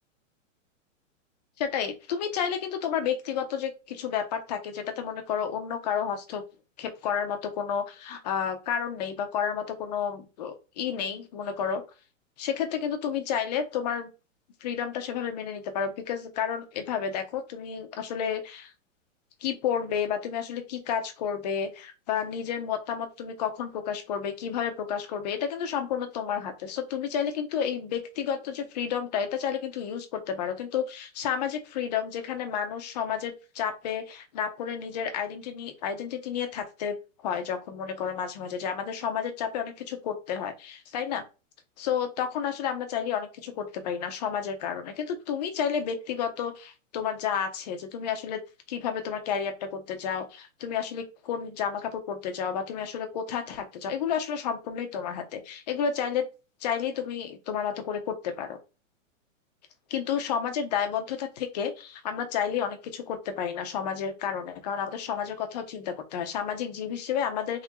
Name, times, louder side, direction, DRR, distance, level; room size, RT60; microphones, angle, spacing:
voice 1, 1.6-6.4 6.8-11.8 12.4-14.1 14.6-18.7 19.4-37.0 37.2-41.2 41.8-48.4 48.7-56.2 56.6-58.6 59.9-67.6, left 7 dB, 35° left, 6 dB, 0.6 m, -31 dB
3.7 x 3.2 x 3.0 m, 0.31 s
hypercardioid pair, 165°, 39 cm